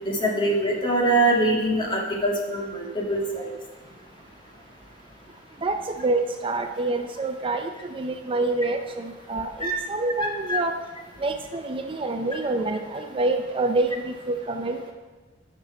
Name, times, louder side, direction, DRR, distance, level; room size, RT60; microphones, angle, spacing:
voice 1, 0.1-3.5 9.6-9.7 10.5-10.6, right 1 dB, 25° left, -1 dB, 1.8 m, -23 dB
voice 2, 5.6-10.7 11.2-14.9, right 2 dB, 30° right, 6 dB, 0.5 m, -27 dB
8.5 x 6.1 x 6.7 m, 1.3 s
head